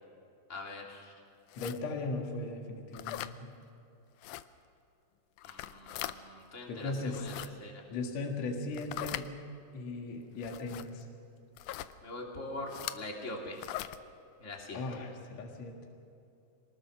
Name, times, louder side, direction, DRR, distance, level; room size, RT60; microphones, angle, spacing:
voice 1, 0.5-1.1 5.4-7.8 12.0-13.6 14.4-14.8, left 2 dB, 25° left, -1 dB, 2.8 m, -43 dB
sound 1, 1.5-1.8 2.9-3.3 4.2-4.4 5.4-6.2 7.0-7.5 8.7-9.3 10.4-10.9 11.6-11.9 12.7-13.0 13.6-14.0, left 14 dB, 80° left, 1.9 m, -40 dB
voice 2, 1.6-3.5 6.7-7.3 7.9-9.3 9.7-11.0 14.7-15.8, left 3 dB, 55° left, 2 dB, 2.8 m, -37 dB
24.5 x 20.0 x 6.2 m, 2.6 s
omnidirectional pair, 3.9 m